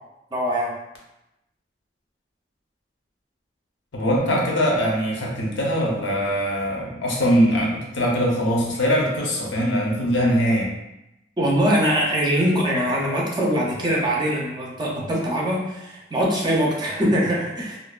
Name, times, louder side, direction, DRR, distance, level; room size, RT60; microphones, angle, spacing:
voice 1, 0.3-0.7 11.4-17.8, equal, 25° right, -3 dB, 0.4 m, -22 dB
voice 2, 3.9-10.7, equal, 90° left, -2 dB, 0.6 m, -22 dB
2.5 x 2.2 x 2.3 m, 0.92 s
head